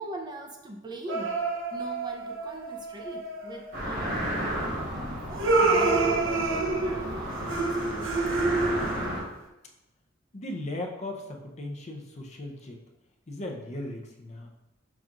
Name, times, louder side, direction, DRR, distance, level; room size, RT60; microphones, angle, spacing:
voice 1, 0.0-1.4 1.7-6.2 6.5-8.5, right 1 dB, 20° right, 1 dB, 0.5 m, -42 dB
sound 1, 1.1-3.8 5.4-9.2, right 3 dB, 70° right, 0.6 m, -27 dB
sound 2, 3.7-9.2, equal, 50° right, 1.4 m, -33 dB
voice 2, 10.3-12.8 13.3-14.5, left 1 dB, 35° left, 2 dB, 0.6 m, -37 dB
6.0 x 2.4 x 3.7 m, 0.96 s
head